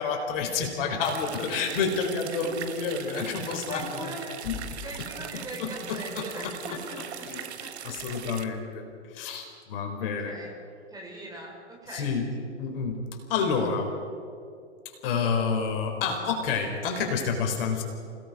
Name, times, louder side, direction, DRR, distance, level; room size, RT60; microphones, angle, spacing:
voice 1, 0.0-3.9 4.4-4.6 5.6-6.5 7.3-7.4 7.8-8.8 9.1-10.3 11.9-12.3 12.6-13.0 13.3-13.9 15.0-17.8, left 5 dB, 50° left, 3 dB, 4.3 m, -29 dB
sound 1, 1.0-8.5, right 9 dB, 60° right, 1.5 m, -40 dB
voice 2, 3.7-4.4 4.8-8.2 10.0-10.6 10.9-12.1, equal, 10° right, 0 dB, 3.9 m, -41 dB
28.5 x 18.0 x 5.4 m, 2.4 s
hypercardioid pair, 115°, 36 cm